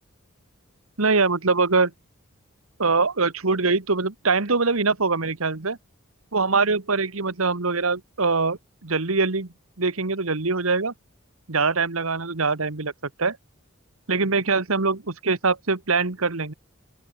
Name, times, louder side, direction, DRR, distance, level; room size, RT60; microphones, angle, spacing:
voice 1, 1.0-1.9 2.8-5.8 6.3-9.5 9.8-10.9 11.5-12.9 13.2-13.4 14.1-16.5, right 4 dB, 85° right, 1.6 m, -23 dB
open air
head